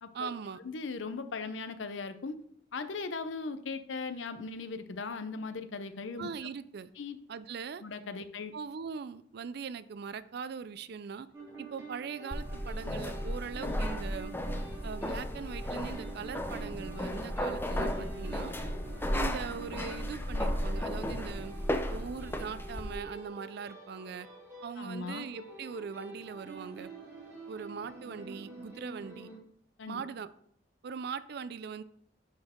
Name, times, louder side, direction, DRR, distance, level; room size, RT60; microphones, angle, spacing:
voice 1, 0.1-0.6 6.2-6.9 7.3-7.8 8.5-11.3 11.6-14.3 14.8-18.5 19.1-21.5 21.9-24.3 24.6-26.9 27.5-29.3 29.9-30.3 30.8-31.8, right 6 dB, 55° right, 14 dB, 0.4 m, -41 dB
voice 2, 0.6-2.4 2.7-6.3 7.0-7.2 7.8-8.5 24.8-25.3 29.8-30.0, left 4 dB, 75° left, 10 dB, 0.6 m, -38 dB
sound 1, 11.3-29.4, right 3 dB, 15° right, 2.7 m, -47 dB
sound 2, 12.3-23.0, equal, 10° left, 0.5 m, -34 dB
10.5 x 4.4 x 3.6 m, 0.68 s
head